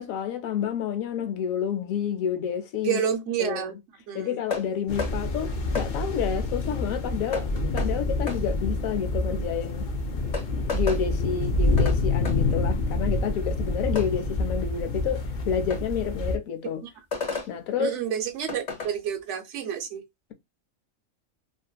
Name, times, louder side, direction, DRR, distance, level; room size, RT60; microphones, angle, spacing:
voice 1, 0.0-3.0 3.4-3.6 4.1-7.5 7.7-9.9 10.7-16.8 17.5-17.9, left 8 dB, 85° left, 1.0 m, -29 dB
voice 2, 2.8-3.7 4.1-4.4 16.8-16.9 17.8-20.0, right 9 dB, 65° right, 0.9 m, -29 dB
sound 1, 4.5-4.7 5.0-5.1 5.7-5.9 7.3-7.5 7.8-7.9 8.3-8.4 9.8-9.9 10.3-11.0 11.8-12.0 12.2-12.4 13.9-14.1 15.7-15.8 17.1-17.5 18.5-18.9, left 4 dB, 35° left, 0.9 m, -31 dB
sound 2, 4.9-16.4, left 2 dB, 65° left, 0.4 m, -27 dB
2.6 x 2.5 x 2.2 m
omnidirectional pair, 1.4 m